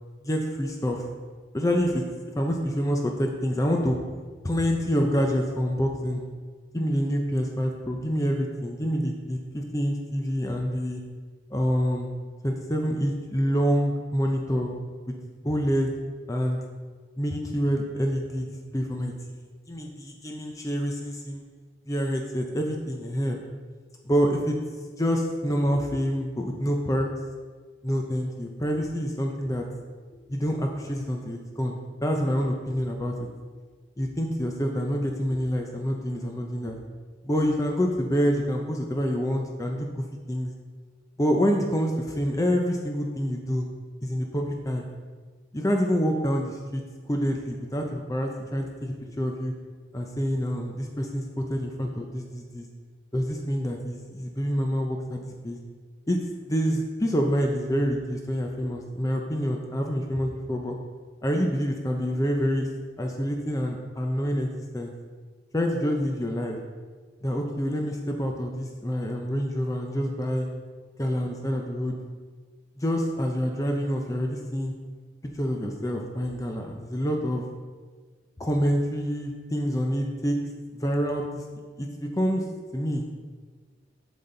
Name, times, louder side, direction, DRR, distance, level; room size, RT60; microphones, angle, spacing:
voice 1, 0.2-1.1 1.5-2.1 2.4-4.0 4.4-6.2 6.7-11.0 11.5-12.1 12.4-14.7 15.1-15.2 15.4-15.9 16.3-16.6 17.2-19.1 19.7-21.4 21.9-23.4 24.0-24.6 24.9-27.1 27.8-29.6 30.3-33.1 34.0-36.7 37.2-40.5 41.2-43.7 44.0-44.8 45.5-49.5 49.9-52.7 53.1-55.6 56.1-56.2 56.5-60.7 61.2-62.7 63.0-64.9 65.5-66.6 67.2-70.5 71.0-71.9 72.8-74.7 75.3-77.4 78.4-80.4 80.7-81.4 81.8-82.4 82.7-83.1, equal, 15° left, 2 dB, 0.6 m, -27 dB
7.9 x 7.2 x 3.9 m, 1.5 s
head